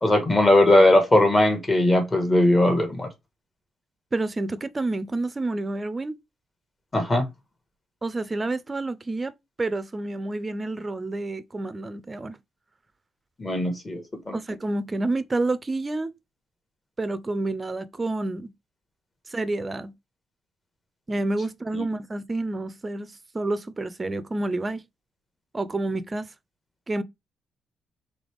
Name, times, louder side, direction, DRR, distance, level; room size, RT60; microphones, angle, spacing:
voice 1, 0.0-3.1 6.9-7.3 13.4-14.4 21.7-21.8, left 1 dB, 25° left, 1.6 m, -19 dB
voice 2, 4.1-6.2 8.0-9.3 9.6-12.4 14.3-16.1 17.0-18.5 19.3-19.9 21.1-24.8 25.5-26.3 26.9-27.0, right 2 dB, 25° right, 0.6 m, -29 dB
3.9 x 3.4 x 3.5 m
cardioid pair, 90°, 0 cm